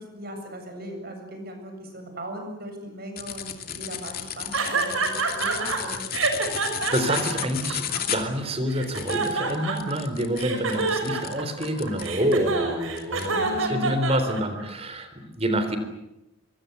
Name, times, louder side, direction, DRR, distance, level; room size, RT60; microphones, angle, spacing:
voice 1, 0.0-6.4 13.3-13.9, equal, 50° right, 5 dB, 7.5 m, -38 dB
sound 1, 3.2-12.4 12.9-13.3, left 9 dB, 50° left, 2.7 m, -34 dB
sound 2, 4.5-5.8 6.1-8.3 8.7-10.0 10.4-14.6, right 4 dB, 85° right, 6.2 m, -27 dB
voice 2, 6.0-6.3 6.9-15.8, right 1 dB, 30° right, 10 dB, 3.9 m, -27 dB
25.0 x 24.5 x 8.2 m, 0.91 s
head